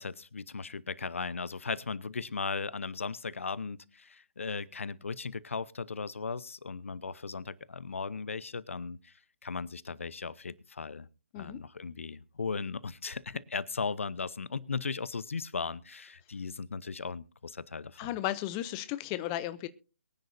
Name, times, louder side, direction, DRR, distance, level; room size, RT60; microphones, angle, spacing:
voice 1, 0.0-9.1 9.4-11.1 11.4-18.1, left 4 dB, 70° left, 19 dB, 0.8 m, -37 dB
voice 2, 18.0-19.7, left 14 dB, 20° left, 14 dB, 0.6 m, -34 dB
23.0 x 10.0 x 2.7 m, 0.33 s
figure-of-eight pair, 150°, 7 cm